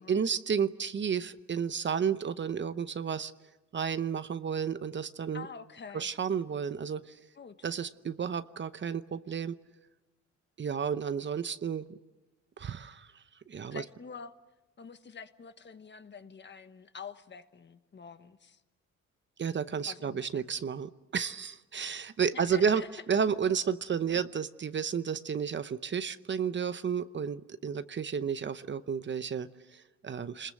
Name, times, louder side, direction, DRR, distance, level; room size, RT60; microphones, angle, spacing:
voice 1, 0.1-3.3 3.7-5.5 5.9-7.1 7.6-9.6 10.6-11.9 12.6-13.1 13.5-13.8 19.4-22.8 23.1-30.5, right 7 dB, 40° right, 13 dB, 0.8 m, -32 dB
voice 2, 5.3-6.1 7.4-7.6 13.7-14.4 14.8-18.6 19.8-20.4 22.3-22.9, left 6 dB, 35° left, 10 dB, 1.3 m, -46 dB
27.5 x 21.0 x 7.7 m, 1.1 s
cardioid pair, 90°, 30 cm